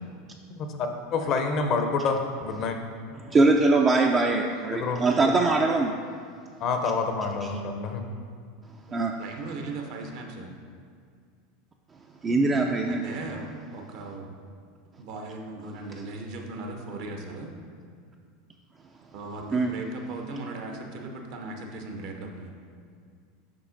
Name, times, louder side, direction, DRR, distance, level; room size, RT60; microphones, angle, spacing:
voice 1, 0.6-2.8 4.7-5.3 6.6-8.0, left 4 dB, 45° left, 5 dB, 0.6 m, -28 dB
voice 2, 3.2-5.9 8.9-9.1 12.2-13.0 19.5-19.7, right 3 dB, 25° right, 2 dB, 0.4 m, -22 dB
voice 3, 8.9-10.5 12.8-14.3 15.0-17.5 19.1-22.5, right 3 dB, 60° right, 3 dB, 0.9 m, -38 dB
7.5 x 5.5 x 2.6 m, 2.1 s
hypercardioid pair, 85°, 0 cm